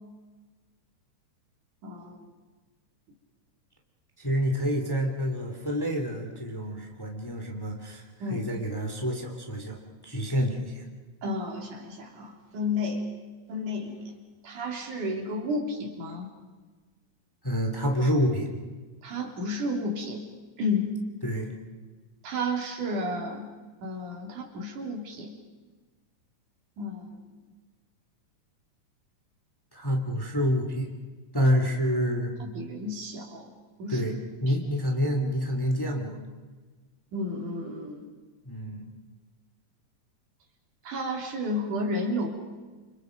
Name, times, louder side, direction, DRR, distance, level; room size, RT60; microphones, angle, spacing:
voice 1, 1.8-2.2 8.2-8.5 11.2-13.1 13.5-14.1 14.4-16.3 19.0-20.2 20.6-20.9 22.2-23.5 23.8-25.3 26.8-27.1 32.4-33.5 33.8-34.1 34.5-34.6 37.1-38.0 40.8-42.3, left 1 dB, 80° right, 1 dB, 4.9 m, -32 dB
voice 2, 4.2-9.8 10.0-10.8 17.4-18.5 21.2-21.5 29.7-30.9 31.3-32.3 33.9-34.1 34.4-36.2 38.4-38.9, equal, 5° left, 1 dB, 2.7 m, -28 dB
29.5 x 27.0 x 5.3 m, 1.3 s
omnidirectional pair, 3.5 m